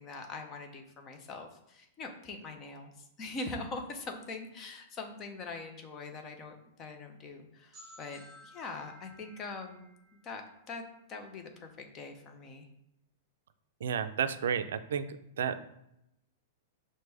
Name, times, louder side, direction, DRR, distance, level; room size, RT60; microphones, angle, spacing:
voice 1, 0.0-9.9 10.2-10.4 10.7-10.8 11.1-12.7, left 3 dB, 20° left, 5 dB, 0.5 m, -43 dB
sound 1, 7.7-11.4, left 1 dB, 15° right, 1.2 m, -56 dB
voice 2, 13.8-15.6, right 7 dB, 80° right, 11 dB, 0.3 m, -32 dB
6.0 x 2.1 x 3.3 m, 0.81 s
supercardioid pair, 170°, 0 cm